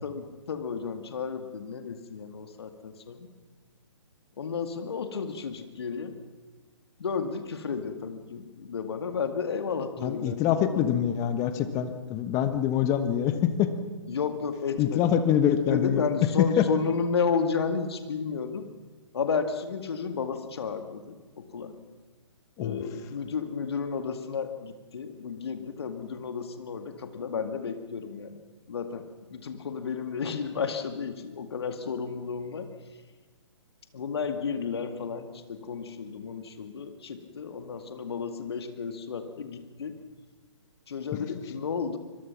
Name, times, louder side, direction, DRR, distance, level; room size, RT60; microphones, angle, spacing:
voice 1, 0.0-3.3 4.4-6.1 7.0-11.0 14.1-15.1 15.4-18.7 19.1-21.8 22.6-28.4 28.7-32.7 33.9-39.9 40.9-42.0, left 5 dB, 55° left, 8 dB, 2.1 m, -32 dB
voice 2, 10.0-13.7 14.8-16.7 22.6-22.7, left 10 dB, 20° left, 10 dB, 1.2 m, -25 dB
25.0 x 22.0 x 6.0 m, 1.4 s
figure-of-eight pair, 135°, 16 cm